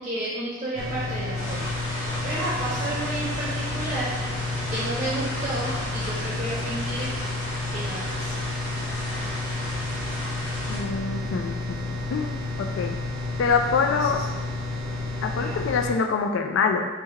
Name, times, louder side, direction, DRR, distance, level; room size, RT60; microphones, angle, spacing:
voice 1, 0.0-4.2 4.7-7.1 7.7-8.5 13.9-14.2 15.4-15.6, right 1 dB, 25° right, -8 dB, 0.6 m, -32 dB
sound 1, 0.8-15.9, left 2 dB, 70° right, 0.6 m, -31 dB
sound 2, 1.3-10.8, equal, 15° left, 1.1 m, -35 dB
voice 2, 10.7-11.8 12.1-12.3 12.6-13.0 13.4-14.2 15.2-16.9, left 5 dB, 70° left, 5 dB, 0.3 m, -25 dB
3.4 x 2.1 x 3.3 m, 1.4 s
head